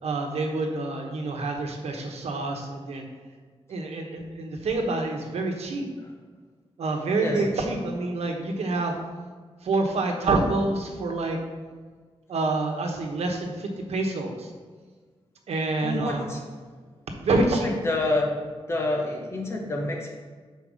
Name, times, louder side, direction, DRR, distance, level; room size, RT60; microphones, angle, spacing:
voice 1, 0.0-3.1 3.7-5.9 6.8-9.0 9.6-11.4 12.3-14.5 15.5-16.3 17.2-17.7, right 3 dB, 85° right, 3 dB, 1.1 m, -27 dB
voice 2, 15.8-16.4 17.3-18.4 18.7-20.1, left 2 dB, 25° left, 0 dB, 1.0 m, -28 dB
5.5 x 4.6 x 6.2 m, 1.5 s
wide cardioid pair, 170°, 10 cm